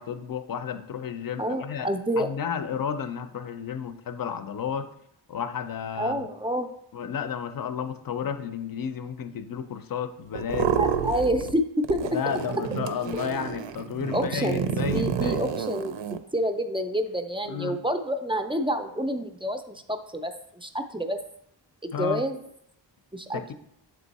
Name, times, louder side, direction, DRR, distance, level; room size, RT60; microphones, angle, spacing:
voice 1, 0.0-1.9 2.2-4.9 5.3-6.2 6.9-10.7 12.0-15.5 17.5-17.8 21.9-22.2 23.3-23.5, left 7 dB, 50° left, 11 dB, 0.5 m, -32 dB
voice 2, 1.4-2.3 6.0-6.7 10.7-11.6 11.9-12.2 14.1-14.6 14.9-15.9 16.3-21.2 21.8-22.4 23.1-23.5, equal, 15° right, 6 dB, 0.3 m, -28 dB
sound 1, 10.3-11.6 11.8-16.2, right 8 dB, 85° right, 0.6 m, -29 dB
7.6 x 3.6 x 4.0 m, 0.73 s
wide cardioid pair, 155°, 44 cm